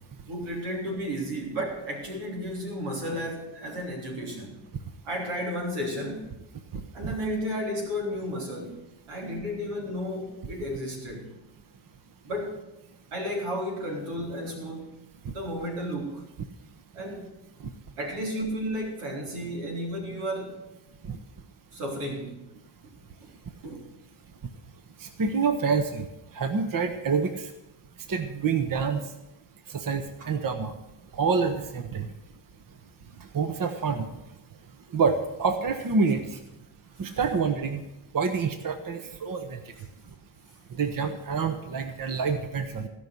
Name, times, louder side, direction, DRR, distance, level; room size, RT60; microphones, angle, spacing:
voice 1, 0.3-4.6 5.0-6.3 6.9-11.3 12.2-12.7 13.1-15.0 15.3-16.2 16.9-17.3 18.0-20.6 21.7-22.4 23.6-23.9 30.2-30.3 37.0-37.1, equal, 85° right, 1 dB, 3.4 m, -33 dB
voice 2, 25.0-26.1 26.3-27.5 28.1-29.0 29.7-30.7 31.1-32.1 33.3-34.1 34.9-36.2 37.0-37.8 38.1-39.6 40.8-42.9, right 5 dB, 40° right, 8 dB, 1.2 m, -27 dB
16.0 x 5.7 x 7.9 m, 0.94 s
supercardioid pair, 70°, 49 cm